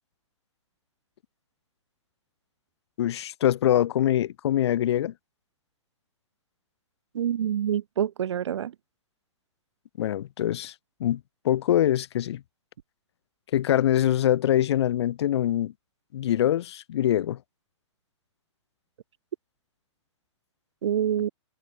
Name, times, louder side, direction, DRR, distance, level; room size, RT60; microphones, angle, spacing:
voice 1, 3.0-5.1 10.0-10.7 11.0-12.4 13.5-15.7 16.1-17.4, left 11 dB, 60° left, 7.1 m, -24 dB
voice 2, 7.1-8.7 20.8-21.3, right 10 dB, 65° right, 2.8 m, -26 dB
hypercardioid pair, 120°, 16 cm